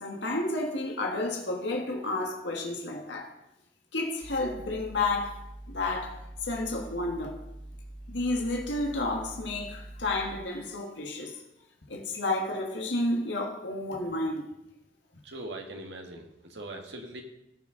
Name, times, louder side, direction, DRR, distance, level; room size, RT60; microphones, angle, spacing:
voice 1, 0.0-3.3 3.9-5.4 5.7-7.4 8.1-11.4 11.9-14.5, left 2 dB, 85° left, 1 dB, 1.6 m, -31 dB
sound 1, 4.2-10.4, right 1 dB, 25° right, 1.4 m, -45 dB
voice 2, 15.2-17.2, right 1 dB, 85° right, 3 dB, 1.5 m, -41 dB
18.5 x 6.2 x 3.8 m, 0.88 s
head